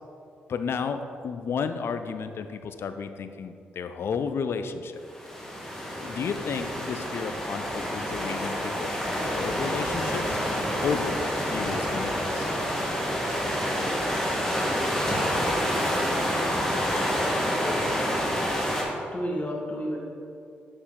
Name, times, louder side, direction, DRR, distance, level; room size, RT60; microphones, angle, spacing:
voice 1, 0.5-5.0 6.0-10.4 10.8-12.5, left 6 dB, 60° left, 9 dB, 0.4 m, -32 dB
sound 1, 5.1-18.8, equal, 10° left, 1.4 m, -28 dB
voice 2, 17.6-18.2 19.1-20.0, equal, 30° left, -1 dB, 1.5 m, -32 dB
6.7 x 4.4 x 3.7 m, 2.5 s
hypercardioid pair, 45°, 5 cm